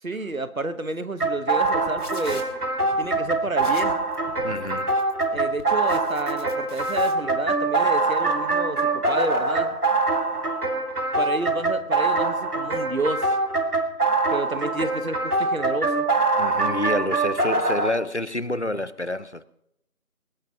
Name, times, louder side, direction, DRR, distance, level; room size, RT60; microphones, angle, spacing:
voice 1, 0.0-2.5 3.0-4.0 5.3-9.8 11.2-13.3 14.3-16.0, right 2 dB, 65° right, 1.3 m, -30 dB
sound 1, 1.2-17.9, right 3 dB, 90° right, 2.0 m, -24 dB
sound 2, 1.5-7.1, left 1 dB, 90° left, 2.7 m, -42 dB
voice 2, 4.4-5.0 16.4-19.4, left 1 dB, 50° left, 0.6 m, -28 dB
22.0 x 18.0 x 2.9 m
figure-of-eight pair, 175°, 44 cm